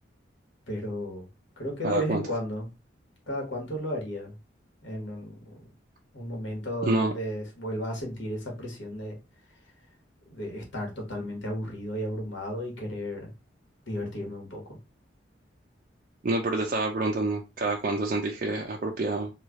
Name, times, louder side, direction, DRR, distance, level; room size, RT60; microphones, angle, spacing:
voice 1, 0.7-1.3 1.6-2.7 3.3-4.3 4.8-5.6 6.1-9.2 10.3-13.3 13.9-14.8, equal, 80° left, 1.4 m, -34 dB
voice 2, 1.8-2.2 6.8-7.1 16.2-19.3, right 2 dB, 45° right, 0.4 m, -27 dB
3.2 x 2.3 x 3.5 m
head